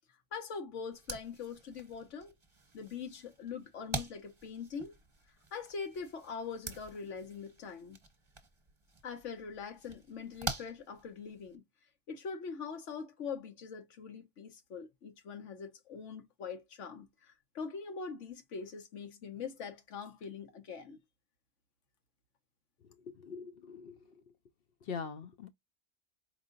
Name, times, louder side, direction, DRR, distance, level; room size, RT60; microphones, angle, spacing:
voice 1, 0.3-2.3 2.7-4.9 5.5-8.0 9.0-11.6 12.1-21.0, left 5 dB, 85° left, 1.3 m, -43 dB
sound 1, 0.9-11.6, right 3 dB, 25° right, 1.0 m, -46 dB
voice 2, 23.1-24.0 24.8-25.5, left 6 dB, 60° left, 0.7 m, -42 dB
4.7 x 3.0 x 2.5 m
omnidirectional pair, 1.2 m